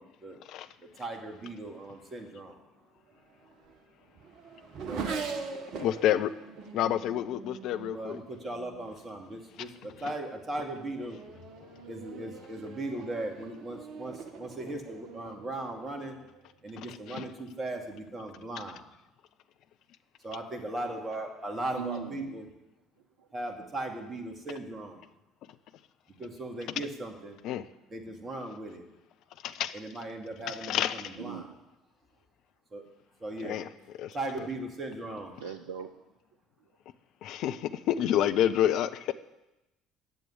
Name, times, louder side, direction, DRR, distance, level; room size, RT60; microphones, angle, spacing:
voice 1, 0.0-0.4 0.8-2.6 4.8-5.2 7.9-11.2 11.9-16.2 16.6-18.8 20.2-22.5 23.3-25.0 26.2-27.4 27.9-28.8 29.7-31.5 32.7-32.9 33.2-33.6 34.1-35.4, right 2 dB, 25° right, 2.3 m, -38 dB
Race car auto racing / Accelerating revving vroom, 3.1-9.0 9.8-10.1 10.6-16.5, right 5 dB, 50° right, 1.2 m, -43 dB
voice 2, 5.8-6.3 6.7-8.2 11.6-11.9 16.8-17.3 27.4-27.6 29.4-29.7 30.5-31.1 33.4-33.7 34.0-34.2 37.2-39.1, left 11 dB, 55° left, 0.6 m, -29 dB
voice 3, 21.8-22.4 23.2-23.3 31.2-31.5 35.4-35.9, right 7 dB, 70° right, 0.6 m, -39 dB
11.0 x 7.6 x 9.8 m
figure-of-eight pair, 55°, 0 cm